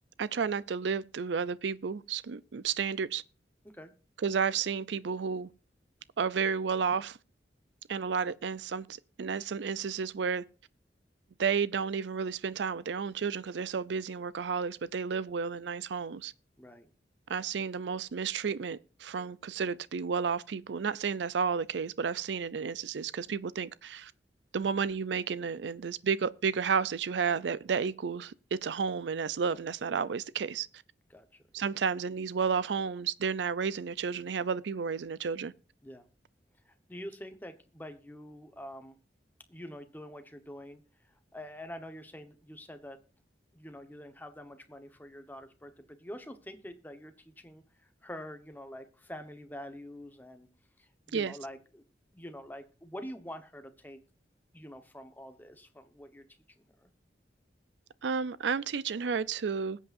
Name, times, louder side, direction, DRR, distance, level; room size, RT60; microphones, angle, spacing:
voice 1, 0.2-3.2 4.2-5.5 6.2-7.2 7.9-10.4 11.4-16.3 17.3-24.1 24.5-30.7 31.5-35.5 51.1-51.3 58.0-59.8, right 6 dB, 80° right, 0.5 m, -32 dB
voice 2, 31.1-31.6 35.8-36.0 36.6-39.0 39.5-40.8 41.3-43.0 43.5-50.5 50.8-51.8 52.1-54.0 54.5-56.2 56.8-56.9, equal, 10° left, 1.1 m, -46 dB
21.0 x 8.2 x 2.6 m
head